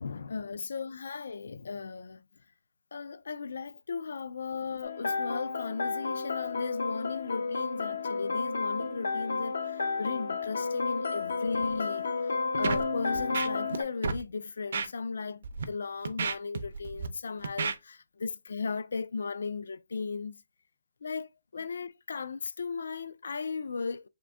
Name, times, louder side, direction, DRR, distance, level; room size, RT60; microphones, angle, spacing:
voice 1, 0.0-2.2 2.9-12.1 12.6-20.4 21.0-24.1, left 4 dB, 60° left, 0.3 m, -36 dB
sound 1, 4.8-13.8, left 4 dB, 75° left, 0.7 m, -32 dB
Scratching (performance technique), 12.6-12.8 13.2-13.8 14.0-14.2 14.7-14.9 15.4-15.6 16.1-17.1 17.4-17.8, right 5 dB, 45° right, 0.5 m, -31 dB
3.6 x 2.5 x 3.4 m
hypercardioid pair, 180°, 0 cm